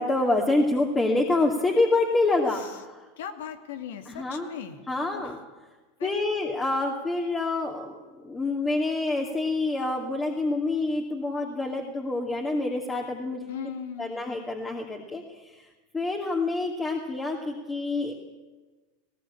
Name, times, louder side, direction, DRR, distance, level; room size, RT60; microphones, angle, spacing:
voice 1, 0.0-3.0 4.1-4.5 4.9-5.4 6.0-8.0 8.2-13.5 14.0-15.2 15.9-18.1, left 2 dB, 15° left, 1 dB, 2.5 m, -27 dB
voice 2, 2.5-2.8 3.2-4.8 5.1-5.3 6.0-6.2 13.5-14.2, left 8 dB, 75° left, 7 dB, 2.3 m, -38 dB
19.0 x 18.0 x 8.6 m, 1.3 s
hypercardioid pair, 100°, 0 cm